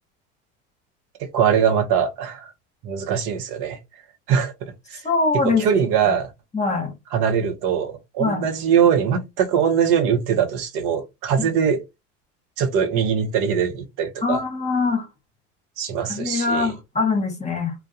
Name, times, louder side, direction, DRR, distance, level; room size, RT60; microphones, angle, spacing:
voice 1, 1.2-2.5 2.8-3.8 4.3-5.0 5.4-6.3 7.1-11.8 12.6-14.4 15.8-16.7, right 7 dB, 60° right, 0.7 m, -22 dB
voice 2, 5.0-5.6 6.5-6.9 8.2-8.5 11.4-11.5 14.2-15.1 16.1-17.7, left 4 dB, 20° left, 0.9 m, -23 dB
2.2 x 2.1 x 2.7 m
hypercardioid pair, 85°, 36 cm